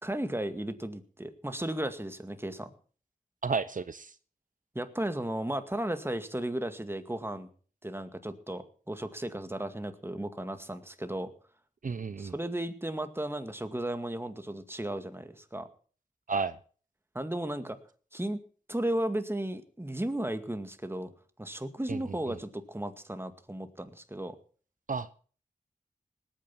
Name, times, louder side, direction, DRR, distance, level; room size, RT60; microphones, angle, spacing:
voice 1, 0.0-2.7 4.7-7.5 7.8-11.3 12.2-15.7 17.1-17.8 18.1-18.4 18.7-21.1 21.4-24.4, right 1 dB, 15° right, 9 dB, 2.1 m, -35 dB
voice 2, 3.4-4.2 11.8-12.3 16.3-16.6 21.9-22.0 22.3-22.4 24.9-25.1, right 5 dB, 60° right, 14 dB, 0.7 m, -32 dB
19.0 x 9.1 x 5.8 m, 0.43 s
cardioid pair, 40°, 15 cm